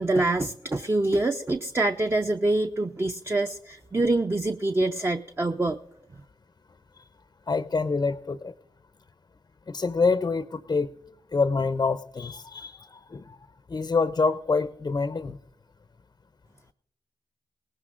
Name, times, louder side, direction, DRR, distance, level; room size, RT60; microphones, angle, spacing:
voice 1, 0.0-5.8, right 2 dB, 20° right, 7 dB, 0.5 m, -25 dB
voice 2, 7.5-8.5 9.7-10.9 11.3-13.4 13.7-15.4, left 4 dB, 35° left, 13 dB, 0.5 m, -26 dB
19.0 x 18.0 x 2.5 m, 0.81 s
supercardioid pair, 45°, 11 cm